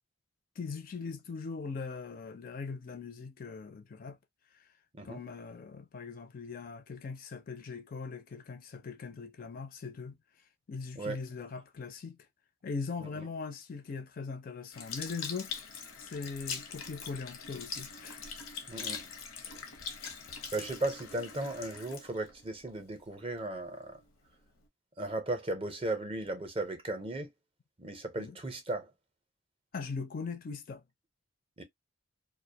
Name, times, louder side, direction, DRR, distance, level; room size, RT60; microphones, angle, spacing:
voice 1, 0.6-4.2 5.0-10.2 10.7-12.2 12.6-15.7 16.0-18.2 28.2-28.4 29.7-30.8, left 4 dB, 45° left, 0.4 m, -40 dB
Sink (filling or washing) / Liquid, 14.7-23.3 23.9-24.0, left 6 dB, 85° left, 0.7 m, -42 dB
voice 2, 18.7-19.0 19.5-19.6 20.5-24.0 25.0-27.3 27.8-28.9 31.6-31.7, right 2 dB, 25° right, 0.5 m, -36 dB
2.4 x 2.0 x 2.6 m
head